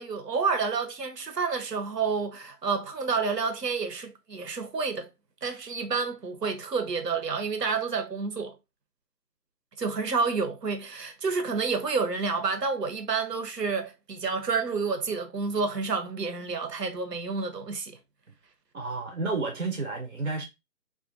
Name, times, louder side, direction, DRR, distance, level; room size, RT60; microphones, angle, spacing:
voice 1, 0.0-5.1 5.4-8.5 9.8-18.0, right 4 dB, 85° right, 0.9 m, -29 dB
voice 2, 18.7-20.4, right 3 dB, 60° right, 0.6 m, -31 dB
2.4 x 2.4 x 2.4 m
figure-of-eight pair, 180°, 47 cm